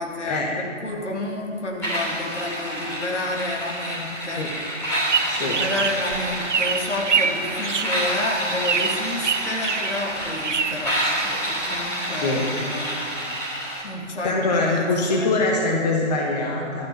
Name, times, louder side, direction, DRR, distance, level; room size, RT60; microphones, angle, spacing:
voice 1, 0.0-4.4 5.4-13.0 13.8-14.9 15.2-15.3, left 2 dB, 65° left, 1 dB, 2.2 m, -30 dB
sound 1, 1.8-13.8, equal, 5° left, 3.3 m, -28 dB
sound 2, 4.8-11.9, right 6 dB, 70° right, 0.7 m, -27 dB
voice 2, 5.3-5.6 11.3-11.4 12.1-12.5 14.2-16.9, left 2 dB, 35° left, -1 dB, 1.2 m, -23 dB
12.5 x 6.3 x 8.8 m, 2.4 s
figure-of-eight pair, 135°, 37 cm